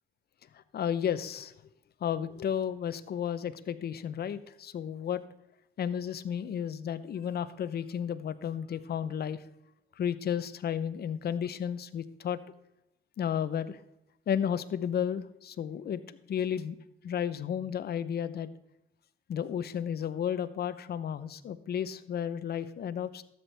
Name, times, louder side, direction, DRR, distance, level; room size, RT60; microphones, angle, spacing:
voice 1, 0.7-1.5 2.0-5.2 5.8-9.4 10.0-12.4 13.2-13.8 14.3-16.0 16.3-16.8 17.0-18.5 19.3-23.2, left 8 dB, 55° left, 14 dB, 0.7 m, -33 dB
13.0 x 7.9 x 3.4 m, 0.84 s
cardioid pair, 90°, 20 cm